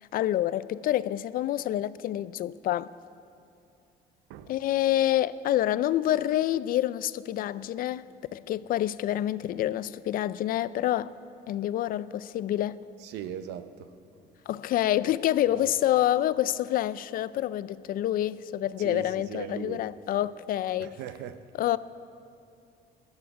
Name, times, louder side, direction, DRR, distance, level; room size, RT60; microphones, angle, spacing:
voice 1, 0.1-2.9 4.5-8.0 8.3-11.1 11.5-12.8 14.5-21.0 21.6-21.8, left 13 dB, 60° left, 0.4 m, -27 dB
voice 2, 13.0-13.9 15.5-15.6 18.8-19.8 20.8-21.4, right 10 dB, 90° right, 0.7 m, -39 dB
17.5 x 11.5 x 4.8 m
cardioid pair, 110°, 17 cm